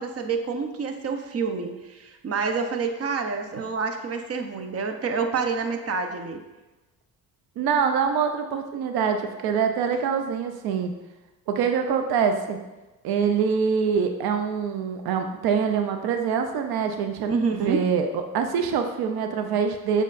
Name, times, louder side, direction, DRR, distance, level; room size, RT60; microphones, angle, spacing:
voice 1, 0.0-6.4 17.3-17.8, right 5 dB, 40° right, 5 dB, 0.8 m, -28 dB
voice 2, 7.6-10.9 11.5-12.6 13.0-20.0, right 6 dB, 85° right, 6 dB, 0.6 m, -25 dB
7.4 x 5.1 x 2.5 m, 1.1 s
cardioid pair, 95°, 36 cm